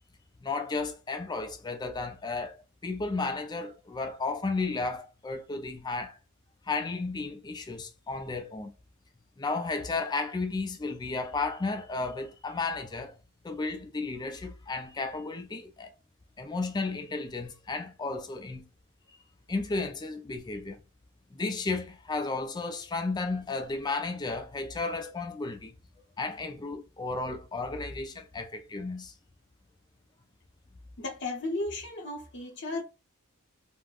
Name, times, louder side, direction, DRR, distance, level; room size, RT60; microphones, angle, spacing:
voice 1, 0.4-2.6 2.8-6.2 6.7-8.7 9.4-13.1 13.4-15.9 16.4-18.6 19.5-20.8 21.3-25.7 26.2-29.1, left 3 dB, 20° left, 0.3 m, -33 dB
voice 2, 31.0-32.8, left 2 dB, 55° left, 0.8 m, -34 dB
3.5 x 2.1 x 2.4 m
head